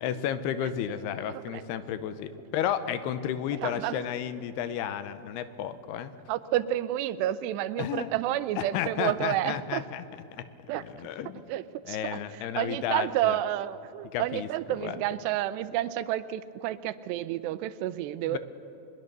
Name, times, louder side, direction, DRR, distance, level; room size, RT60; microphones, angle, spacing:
voice 1, 0.0-6.1 7.8-8.1 8.6-10.0 10.9-11.4 11.9-13.4 14.1-15.0 18.3-18.4, left 9 dB, 80° left, 12 dB, 2.8 m, -32 dB
voice 2, 1.3-1.6 3.6-4.1 6.3-9.9 10.7-11.1 11.5-18.4, right 13 dB, 85° right, 15 dB, 2.9 m, -30 dB
22.0 x 21.5 x 6.8 m, 2.9 s
omnidirectional pair, 4.8 m